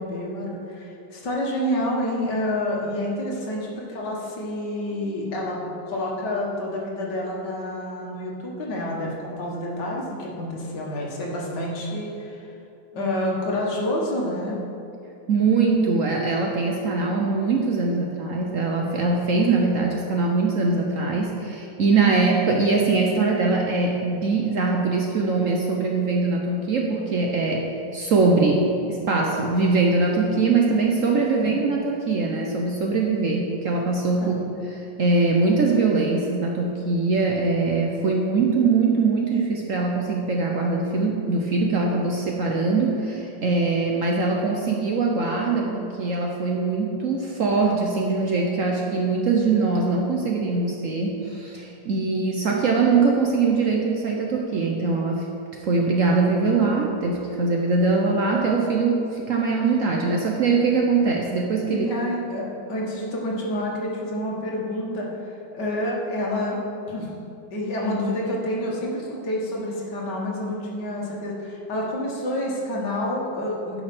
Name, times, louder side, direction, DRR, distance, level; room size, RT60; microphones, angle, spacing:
voice 1, 0.0-5.6 5.9-12.5 12.9-14.6 31.4-31.6 34.2-34.4 61.7-65.1 65.5-66.6 66.9-67.1 67.5-73.8, left 1 dB, 65° left, -3 dB, 2.2 m, -28 dB
voice 2, 15.3-34.4 35.0-55.3 55.6-61.9, right 3 dB, 55° right, 0 dB, 0.9 m, -22 dB
10.0 x 5.5 x 6.0 m, 2.7 s
omnidirectional pair, 2.0 m